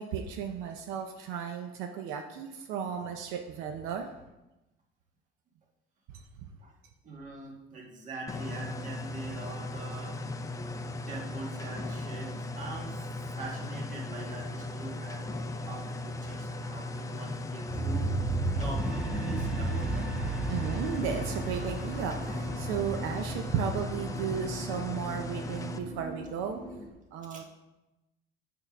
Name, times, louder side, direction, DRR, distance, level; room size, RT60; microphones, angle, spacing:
voice 1, 0.0-4.1 6.1-6.2 20.5-26.6 27.1-27.4, right 7 dB, 85° right, 5 dB, 0.6 m, -34 dB
voice 2, 7.0-10.1 11.1-15.3 15.6-20.1 27.3-27.4, right 3 dB, 40° right, -1 dB, 1.6 m, -43 dB
sound 1, 8.3-25.8, left 2 dB, 15° left, 0.4 m, -37 dB
sound 2, 17.7-26.9, right 2 dB, 5° right, 1.1 m, -35 dB
6.8 x 3.7 x 5.9 m, 1.0 s
cardioid pair, 145°, 20 cm